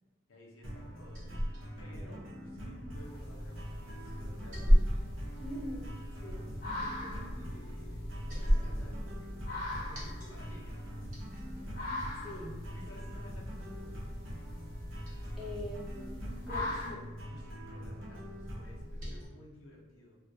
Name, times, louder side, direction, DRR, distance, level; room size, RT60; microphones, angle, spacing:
voice 1, 0.3-4.8 6.6-10.0 10.3-10.8 12.7-14.0 17.3-20.2, left 1 dB, 90° left, -2 dB, 0.6 m, -55 dB
Liquid, 0.6-19.3, equal, 40° right, 0.8 m, -36 dB
sound 1, 0.6-18.8, equal, 90° right, 0.6 m, -45 dB
sound 2, 2.9-16.9, left 1 dB, 45° left, 0.6 m, -42 dB
voice 2, 5.4-5.9 6.2-6.5 12.1-12.6 12.9-13.0 15.4-16.1 16.4-17.0, left 1 dB, ahead, -7 dB, 0.5 m, -43 dB
2.3 x 2.1 x 2.6 m, 1.2 s
head